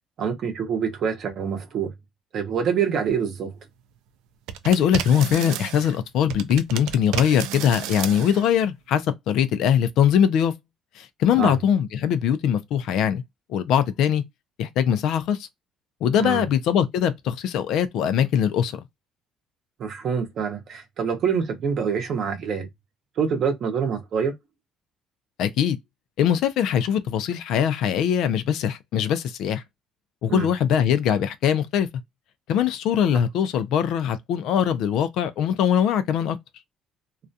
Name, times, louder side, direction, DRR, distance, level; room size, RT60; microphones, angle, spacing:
voice 1, 0.2-1.9 2.3-3.5 11.3-11.6 16.2-16.4 19.8-22.7 23.2-24.3 30.3-30.5, right 7 dB, 40° right, 0.7 m, -26 dB
sound 1, 4.5-6.0 6.3-8.5, right 10 dB, 85° right, 0.4 m, -32 dB
voice 2, 4.6-10.5 11.0-13.2 13.5-14.2 14.6-15.5 16.0-18.8 25.4-25.8 26.2-29.6 30.2-31.9 32.5-36.4, left 9 dB, 55° left, 0.4 m, -22 dB
2.3 x 2.2 x 2.6 m
cardioid pair, 180°, 0 cm